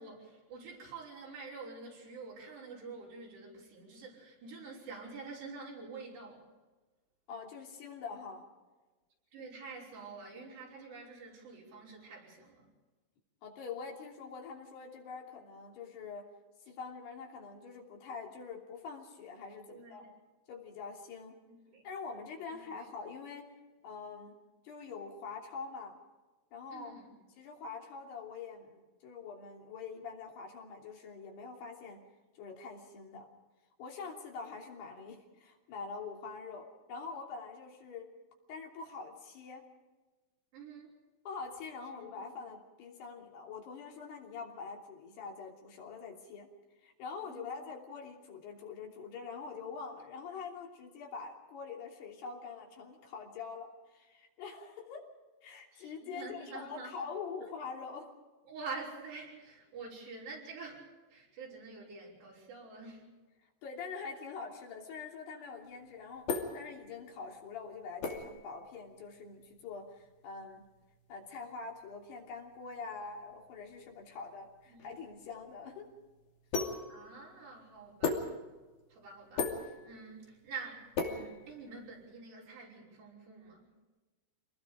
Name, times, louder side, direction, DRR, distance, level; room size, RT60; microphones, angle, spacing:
voice 1, 0.0-6.5 9.3-12.7 16.7-16.8 19.7-20.1 21.5-21.8 22.5-22.7 23.0-23.1 26.7-27.1 40.5-40.9 41.9-42.2 47.3-47.5 55.7-56.9 58.5-63.1 74.7-74.9 76.9-78.3 78.9-83.7, right 4 dB, 85° right, -3 dB, 7.8 m, -47 dB
voice 2, 7.3-8.4 13.4-16.3 16.7-20.0 20.5-21.4 21.8-23.5 23.8-25.9 26.5-27.0 27.4-32.0 32.4-33.3 33.8-38.1 38.5-39.6 41.2-46.5 46.8-55.0 55.4-58.1 63.6-70.7 71.1-75.9, left 5 dB, 75° left, 1 dB, 5.1 m, -45 dB
sound 1, 65.7-82.1, left 4 dB, 50° left, 3.9 m, -40 dB
27.5 x 20.0 x 5.1 m, 1.2 s
omnidirectional pair, 4.7 m